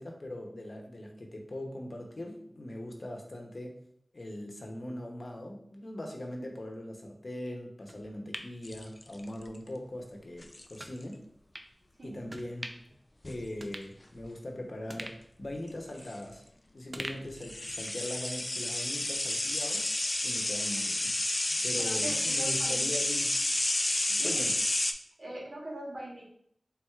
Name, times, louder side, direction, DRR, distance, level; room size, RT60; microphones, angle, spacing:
voice 1, 0.0-3.8 4.1-11.2 12.0-12.7 13.2-16.4 16.7-19.8 20.2-21.1 21.6-23.4 24.2-24.6, left 1 dB, 60° left, 1 dB, 0.8 m, -40 dB
sound 1, 7.9-9.5 9.9-10.0 10.8-11.0 11.5-11.7 12.3-13.0 13.3-13.4 13.6-14.5 14.9-16.5 16.9-18.1 18.4-18.5, right 1 dB, 35° right, 0.4 m, -45 dB
sound 2, 8.6-9.4 10.4-10.8 13.2-13.5 15.7-15.8 16.0-16.1 17.4-24.9, left 1 dB, 40° left, 0.3 m, -30 dB
voice 2, 21.8-22.9 24.1-24.4 25.2-26.2, right 1 dB, 70° right, -3 dB, 1.2 m, -41 dB
4.4 x 3.6 x 2.4 m, 0.68 s
wide cardioid pair, 55°, 0 cm